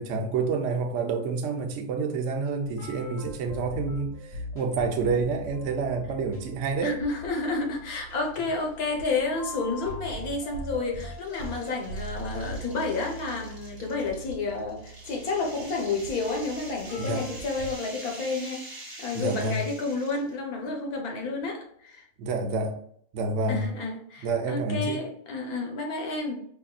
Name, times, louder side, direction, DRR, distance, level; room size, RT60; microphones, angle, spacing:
voice 1, 0.0-6.9 17.0-17.2 19.1-19.6 22.2-22.8 23.1-23.7 24.2-25.0, right 4 dB, 65° right, 0.9 m, -28 dB
sound 1, 2.6-17.7, right 1 dB, 55° left, 0.9 m, -41 dB
voice 2, 6.8-18.7 19.0-22.0 23.5-26.3, left 3 dB, 75° left, 1.4 m, -30 dB
sound 2, 8.2-8.7 9.1-9.2 10.2-20.3, right 1 dB, 15° right, 1.3 m, -46 dB
5.1 x 2.6 x 2.3 m
omnidirectional pair, 1.6 m